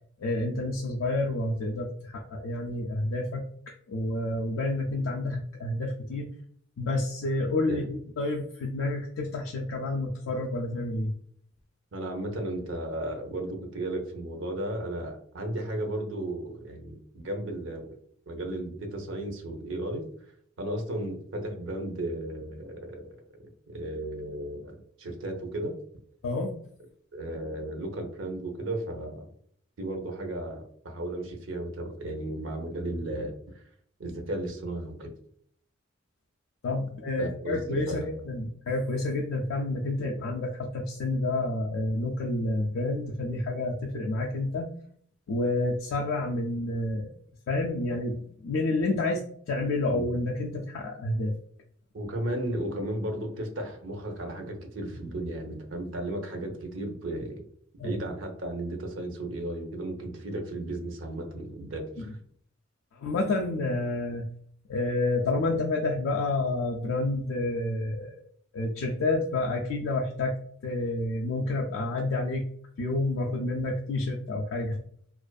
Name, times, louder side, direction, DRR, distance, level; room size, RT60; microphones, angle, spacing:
voice 1, 0.2-6.3 6.8-11.1 26.2-26.5 36.6-44.7 45.3-47.1 47.5-51.4 57.8-58.0 62.0-62.1 62.9-64.3 64.7-68.2 68.5-70.4 70.6-72.5 72.8-74.8, left 2 dB, 75° left, 1 dB, 0.3 m, -29 dB
voice 2, 11.9-17.9 18.3-20.1 20.6-23.1 23.7-25.7 27.1-29.3 29.8-33.6 34.0-35.1 37.2-38.1 40.0-40.1 49.9-50.2 51.9-57.4 57.8-62.1, right 1 dB, 75° right, 3 dB, 0.6 m, -34 dB
2.5 x 2.4 x 2.2 m, 0.62 s
head